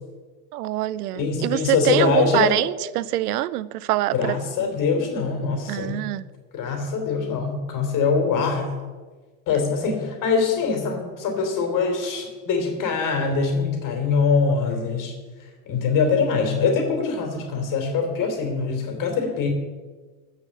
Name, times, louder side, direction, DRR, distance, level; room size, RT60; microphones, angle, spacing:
voice 1, 0.5-4.4 5.7-6.3, right 15 dB, 85° right, 0.6 m, -24 dB
voice 2, 1.1-2.5 4.1-6.0 6.5-8.7 9.5-15.1 15.7-19.5, left 5 dB, 45° left, 3.6 m, -23 dB
15.5 x 5.9 x 7.3 m
hypercardioid pair, 110°, 45 cm